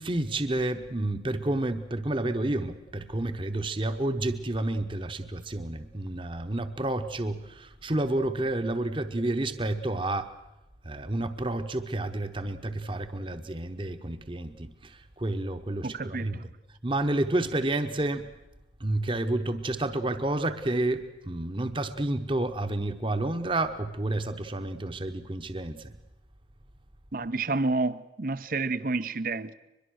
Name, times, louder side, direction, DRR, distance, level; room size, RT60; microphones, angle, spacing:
voice 1, 0.0-10.3 10.8-16.5 16.8-18.3 18.8-25.9, right 2 dB, 30° right, 9 dB, 1.0 m, -30 dB
voice 2, 15.8-16.5 27.1-29.5, right 3 dB, 50° right, 14 dB, 0.7 m, -29 dB
23.0 x 22.5 x 6.4 m, 0.96 s
head